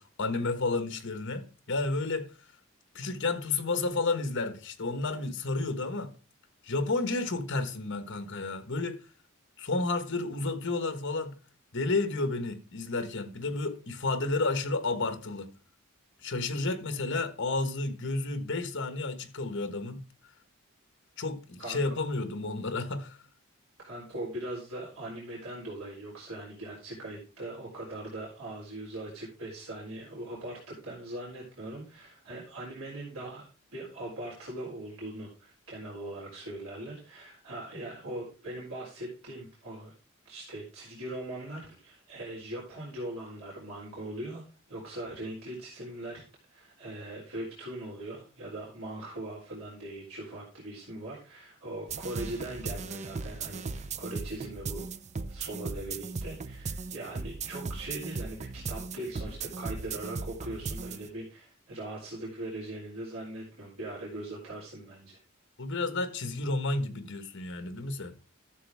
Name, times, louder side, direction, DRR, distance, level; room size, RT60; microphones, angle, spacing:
voice 1, 0.0-2.3 2.9-6.1 6.6-9.0 9.6-11.4 11.7-15.5 16.2-20.0 21.2-23.2 65.6-68.1, left 3 dB, 60° left, 1.4 m, -31 dB
voice 2, 21.6-22.0 23.8-39.9 40.3-46.2 46.5-54.9 55.3-65.2, right 1 dB, 90° right, 3.8 m, -40 dB
sound 1, 51.9-61.1, right 4 dB, 35° right, 0.5 m, -37 dB
12.5 x 7.3 x 3.5 m
head